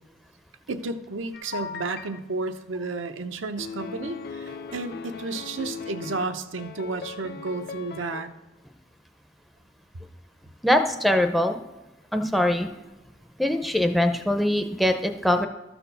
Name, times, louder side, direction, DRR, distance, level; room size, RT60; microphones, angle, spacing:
voice 1, 0.7-8.3, right 3 dB, 85° right, 7 dB, 0.7 m, -32 dB
sound 1, 1.3-2.2 3.6-6.2 6.6-8.2, left 5 dB, 55° left, 0.5 m, -38 dB
voice 2, 10.6-11.6 12.1-12.7 13.4-15.5, left 1 dB, ahead, 6 dB, 0.6 m, -22 dB
13.0 x 4.4 x 6.8 m, 1.1 s
head